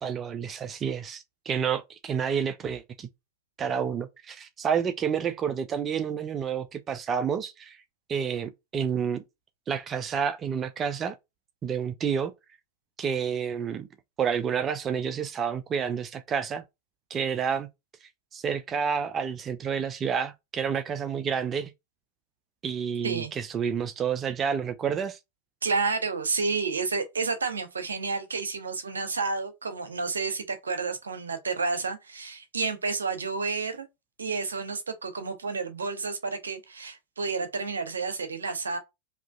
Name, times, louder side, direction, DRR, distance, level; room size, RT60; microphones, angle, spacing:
voice 1, 0.0-3.1 3.6-7.8 8.1-9.2 9.7-11.2 11.6-12.3 13.0-13.9 14.2-16.6 17.1-17.7 18.3-21.7 22.6-25.2, right 7 dB, 25° right, 0.5 m, -29 dB
voice 2, 25.6-33.9 34.2-38.8, right 4 dB, 75° right, 0.9 m, -30 dB
4.8 x 2.8 x 2.4 m
figure-of-eight pair, 90°, 0 cm